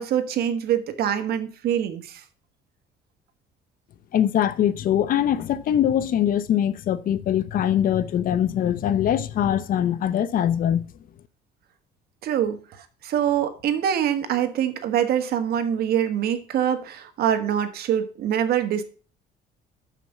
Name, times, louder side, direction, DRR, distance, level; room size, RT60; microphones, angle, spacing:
voice 1, 0.0-2.2 12.2-18.8, right 9 dB, 65° right, 1.4 m, -24 dB
voice 2, 4.1-10.9, left 10 dB, 55° left, 0.7 m, -22 dB
6.9 x 5.9 x 7.2 m
cardioid pair, 110°, 17 cm